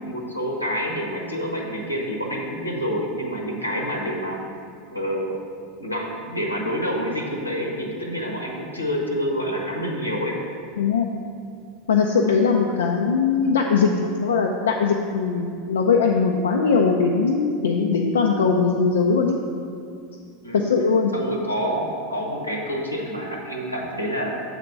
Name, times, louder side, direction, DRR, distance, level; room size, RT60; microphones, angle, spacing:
voice 1, 0.0-4.4 4.9-5.4 5.8-10.4 20.4-20.7 21.1-24.4, equal, 90° left, 0 dB, 1.0 m, -27 dB
voice 2, 10.8-11.1 11.9-19.4 20.5-21.1, left 5 dB, 70° left, 1 dB, 0.4 m, -20 dB
7.4 x 4.1 x 5.9 m, 2.3 s
figure-of-eight pair, 80°, 0 cm